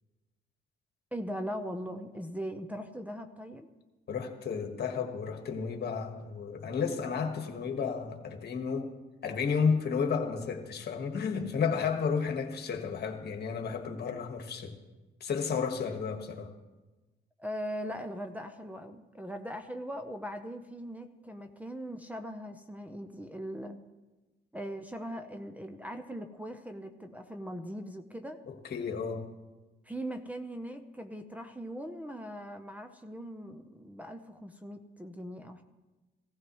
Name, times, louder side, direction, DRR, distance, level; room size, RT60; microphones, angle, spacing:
voice 1, 1.1-3.7 17.4-23.8 24.5-28.4 29.8-35.6, equal, 5° right, 6 dB, 0.8 m, -40 dB
voice 2, 4.1-8.9 9.2-14.7 15.2-16.5 28.5-29.3, left 6 dB, 55° left, 4 dB, 1.6 m, -32 dB
16.5 x 14.5 x 3.1 m, 1.2 s
cardioid pair, 90°, 20 cm